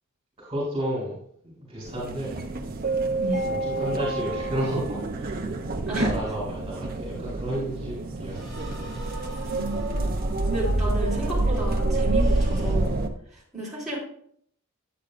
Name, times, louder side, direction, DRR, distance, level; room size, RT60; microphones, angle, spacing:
voice 1, 0.4-1.1 1.4-2.4 3.4-5.6 5.9-8.5 8.8-8.9, equal, 25° right, -6 dB, 2.9 m, -32 dB
sound 1, 1.9-13.1, right 2 dB, 40° right, 0.7 m, -27 dB
voice 2, 3.1-3.4 5.9-6.1 9.5-10.0 10.5-12.9 13.3-14.0, right 1 dB, ahead, -9 dB, 3.9 m, -32 dB
sound 2, 6.9-12.7, equal, 20° left, 2.7 m, -43 dB
9.7 x 8.6 x 2.5 m, 0.63 s
head